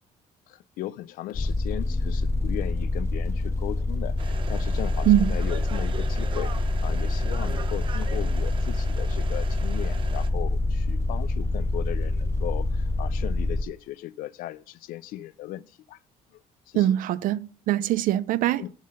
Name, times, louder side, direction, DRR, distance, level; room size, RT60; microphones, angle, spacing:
voice 1, 0.5-16.0 16.3-16.4 16.7-16.9 18.6-18.7, left 15 dB, 75° left, 0.5 m, -37 dB
sound 1, 1.3-13.6, left 2 dB, 20° left, 0.5 m, -26 dB
sound 2, 4.2-10.3, right 6 dB, 35° right, 0.8 m, -40 dB
voice 2, 16.7-18.6, right 13 dB, 65° right, 0.5 m, -22 dB
7.3 x 5.7 x 6.5 m
cardioid pair, 150°, 15 cm